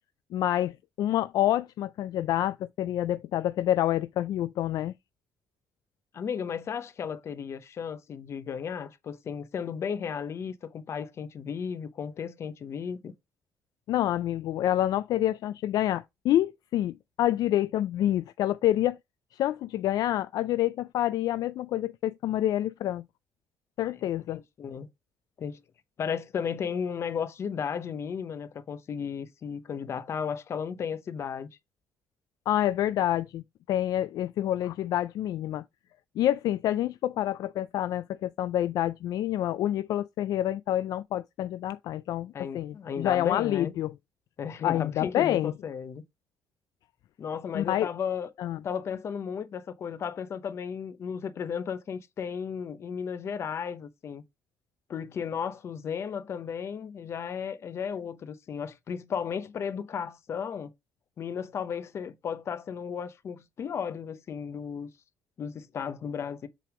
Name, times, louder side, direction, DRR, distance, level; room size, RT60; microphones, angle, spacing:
voice 1, 0.3-4.9 13.9-19.0 19.3-23.0 23.8-24.4 32.5-35.6 36.2-43.9 44.6-45.5 47.5-47.9 48.4-48.6, left 12 dB, 65° left, 0.3 m, -27 dB
voice 2, 6.1-13.1 24.3-24.9 25.4-25.6 26.0-31.5 42.3-43.7 44.4-46.0 47.2-48.3 48.6-54.2 54.9-60.7 61.2-64.9 65.4-66.5, left 7 dB, 40° left, 0.8 m, -34 dB
7.5 x 3.5 x 4.9 m
cardioid pair, 160°, 7 cm